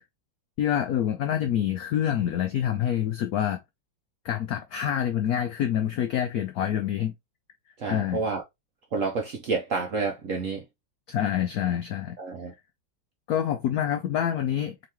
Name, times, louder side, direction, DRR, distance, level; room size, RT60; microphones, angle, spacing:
voice 1, 0.6-3.6 4.2-7.1 7.9-8.2 11.1-12.2 13.3-14.8, left 10 dB, 80° left, 0.8 m, -26 dB
voice 2, 7.8-8.4 8.9-10.6 12.2-12.5, right 4 dB, 60° right, 0.8 m, -29 dB
3.7 x 2.9 x 3.3 m
omnidirectional pair, 2.2 m